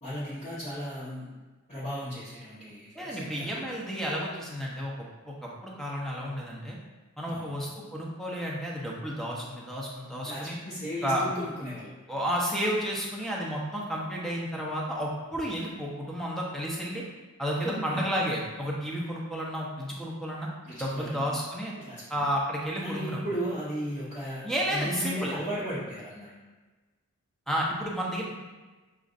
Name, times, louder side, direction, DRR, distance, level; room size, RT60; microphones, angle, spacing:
voice 1, 0.0-1.3 1.7-3.7 7.3-7.6 10.2-11.9 17.6-18.0 20.6-21.4 21.7-22.3 22.8-26.3, equal, 35° left, -11 dB, 1.0 m, -36 dB
voice 2, 2.9-4.9 5.3-6.8 7.2-10.6 11.0-11.2 12.1-17.0 17.4-20.5 20.8-21.7 22.1-23.2 24.4-25.3 27.5-28.3, equal, ahead, -4 dB, 0.6 m, -31 dB
6.2 x 2.5 x 2.5 m, 1.3 s
head